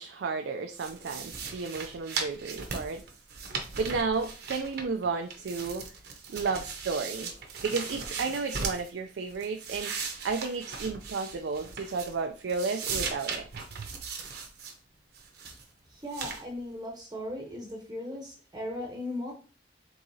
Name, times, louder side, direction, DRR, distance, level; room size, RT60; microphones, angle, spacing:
voice 1, 0.0-3.0 3.8-5.9 6.3-7.3 7.6-9.9 10.2-13.4, right 4 dB, 80° right, 5 dB, 0.4 m, -32 dB
sound 1, 0.7-5.0 5.3-8.9 9.3-12.2 12.5-14.7 15.1-15.6 16.1-16.4, right 5 dB, 60° right, 0.8 m, -38 dB
voice 2, 15.9-19.3, left 1 dB, 20° right, 0 dB, 0.8 m, -37 dB
4.6 x 3.6 x 2.7 m, 0.37 s
head